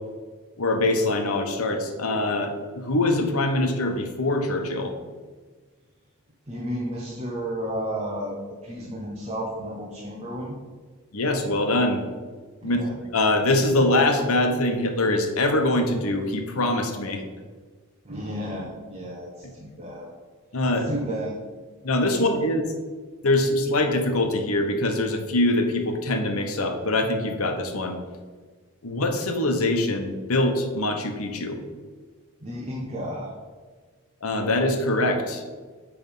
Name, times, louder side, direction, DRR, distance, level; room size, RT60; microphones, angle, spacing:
voice 1, 0.6-4.9 11.1-12.0 12.6-12.8 13.1-17.2 20.5-21.0 21.8-22.6 23.2-28.0 28.8-31.6 34.2-35.4, left 2 dB, 85° left, 5 dB, 1.0 m, -23 dB
voice 2, 6.5-10.5 12.6-12.9 18.1-19.3 19.6-20.1 20.9-21.4 32.4-33.3, equal, 30° right, -2 dB, 0.9 m, -32 dB
9.4 x 3.5 x 5.4 m, 1.4 s
head